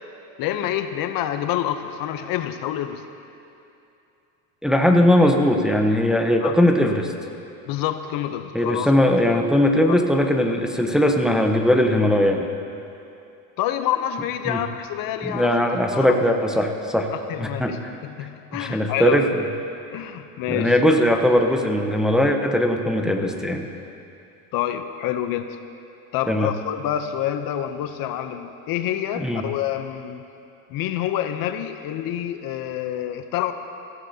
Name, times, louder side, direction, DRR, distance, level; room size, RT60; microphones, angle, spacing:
voice 1, 0.4-3.0 6.4-6.5 7.7-8.9 9.9-10.0 13.6-15.6 15.9-16.3 17.1-17.8 18.1-19.3 19.9-20.8 24.5-25.6 26.1-30.3 30.7-33.5, left 11 dB, 55° left, 9 dB, 0.7 m, -27 dB
voice 2, 4.6-7.1 8.5-12.5 14.4-14.6 15.2-17.1 17.4-17.7 18.5-19.4 20.5-23.7 26.3-26.5 29.1-29.4, left 1 dB, ahead, 2 dB, 0.8 m, -19 dB
17.0 x 15.0 x 2.8 m, 2.7 s
supercardioid pair, 115°, 41 cm